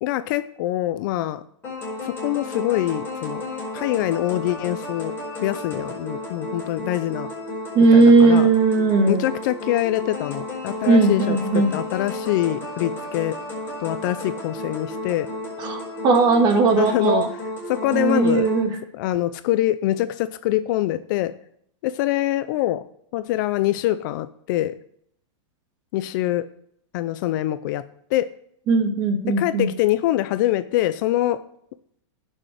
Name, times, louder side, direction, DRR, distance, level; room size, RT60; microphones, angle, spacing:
voice 1, 0.0-1.4 2.0-3.4 3.7-5.1 5.4-7.3 7.9-8.5 9.1-13.4 13.8-15.3 16.8-17.3 17.7-18.5 18.9-21.3 21.8-22.8 23.1-24.8 25.9-26.5 26.9-27.8 28.1-28.3 29.3-31.4, left 14 dB, 40° left, 14 dB, 0.5 m, -24 dB
sound 1, 1.6-18.6, left 1 dB, 15° left, 5.2 m, -33 dB
voice 2, 7.8-9.2 10.9-11.7 15.6-17.3 17.9-18.7 28.7-29.7, right 3 dB, 30° right, 4 dB, 2.0 m, -17 dB
9.7 x 6.5 x 7.5 m, 0.67 s
supercardioid pair, 160°, 16 cm